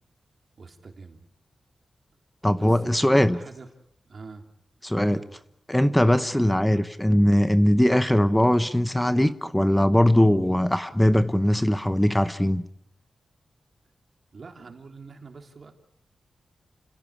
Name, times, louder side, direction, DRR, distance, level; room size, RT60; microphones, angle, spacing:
voice 1, 0.6-1.2 2.6-3.7 4.0-4.4 5.1-5.3 14.3-15.7, right 4 dB, 55° right, 4 dB, 3.3 m, -44 dB
voice 2, 2.4-3.4 4.8-5.2 5.7-12.6, left 1 dB, 5° left, 12 dB, 0.9 m, -20 dB
29.5 x 16.5 x 8.5 m, 0.76 s
wide cardioid pair, 105°, 0 cm